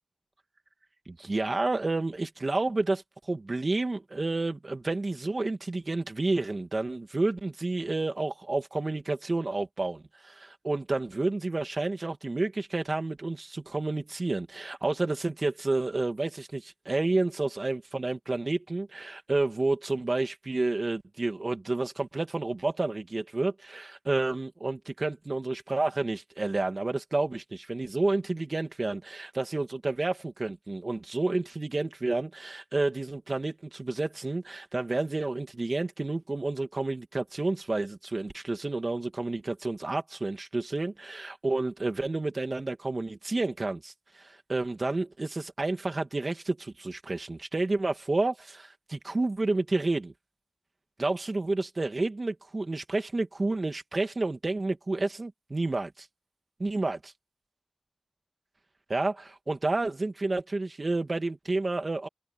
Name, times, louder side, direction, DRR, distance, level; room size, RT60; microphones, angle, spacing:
voice 1, 1.1-3.0 3.3-50.1 51.0-56.1 56.6-57.0 58.9-62.1, right 2 dB, 40° right, 2.4 m, -30 dB
wide cardioid pair, 90°, 0 cm